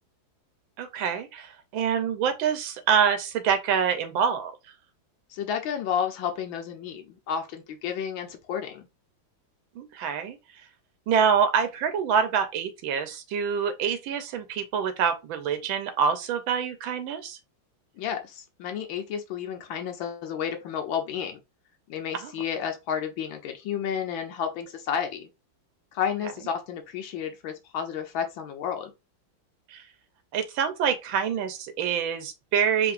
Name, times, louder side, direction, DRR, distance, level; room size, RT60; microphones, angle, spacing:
voice 1, 0.8-4.5 9.8-10.4 11.1-17.4 22.2-22.3 29.7-29.8 30.3-32.9, right 7 dB, 90° right, 1.5 m, -26 dB
voice 2, 5.3-8.9 18.0-21.4 21.9-25.3 25.9-28.9, left 8 dB, 90° left, 1.5 m, -31 dB
4.8 x 3.2 x 2.5 m
omnidirectional pair, 2.1 m